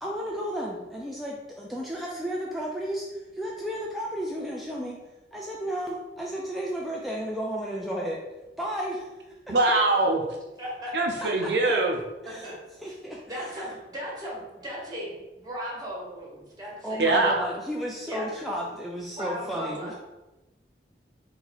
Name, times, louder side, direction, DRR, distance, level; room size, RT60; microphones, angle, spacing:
voice 1, 0.0-5.0 5.3-8.2 8.6-9.1 9.5-9.6 11.2-11.7 12.2-13.7 16.8-19.9, equal, ahead, -3 dB, 0.4 m, -33 dB
voice 2, 9.5-10.2 10.9-12.0 17.0-17.3, right 2 dB, 70° right, 1 dB, 0.6 m, -22 dB
voice 3, 10.6-10.9 12.2-12.5 12.8-12.9 13.3-17.1 18.1-18.3 19.2-19.9, equal, 20° right, -4 dB, 1.5 m, -37 dB
4.5 x 2.7 x 4.0 m, 1.0 s
head